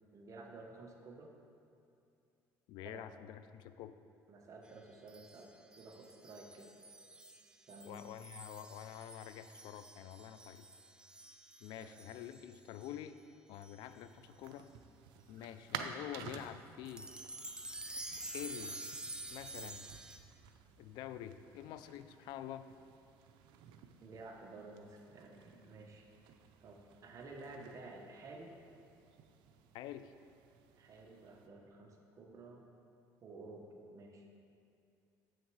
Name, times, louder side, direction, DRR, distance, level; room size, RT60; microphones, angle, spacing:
voice 1, 0.1-1.3 2.8-3.1 4.3-6.7 7.7-8.1 11.8-12.1 24.0-26.1 26.6-28.5 30.7-32.6 33.2-33.7 33.9-34.3, right 3 dB, 45° right, 1 dB, 1.0 m, -52 dB
voice 2, 2.7-3.9 7.8-10.7 11.6-13.2 13.5-14.7 15.3-17.1 18.3-18.8 19.3-19.9 20.8-22.7 29.7-30.1, left 11 dB, 75° left, 12 dB, 0.4 m, -47 dB
sound 1, 5.1-13.0 13.6-13.8 14.6-14.7 16.8-20.2, right 1 dB, 10° right, 0.5 m, -49 dB
sound 2, 13.8-31.5, right 7 dB, 80° right, 0.5 m, -53 dB
7.5 x 6.4 x 4.7 m, 2.6 s
cardioid pair, 110°, 8 cm